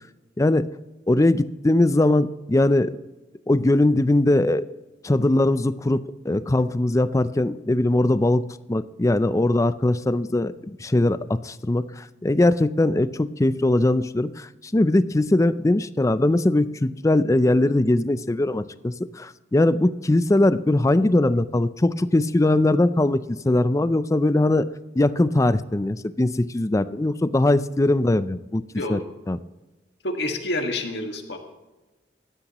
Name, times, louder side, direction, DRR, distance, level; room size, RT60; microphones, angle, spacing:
voice 1, 0.4-0.7 1.1-2.9 3.5-4.7 5.0-14.5 14.7-24.7 24.9-28.6 28.9-29.0 29.3-29.4, left 1 dB, 15° left, 14 dB, 0.4 m, -21 dB
voice 2, 30.0-31.4, left 1 dB, 65° left, 3 dB, 1.8 m, -28 dB
16.0 x 12.0 x 3.0 m, 1.1 s
head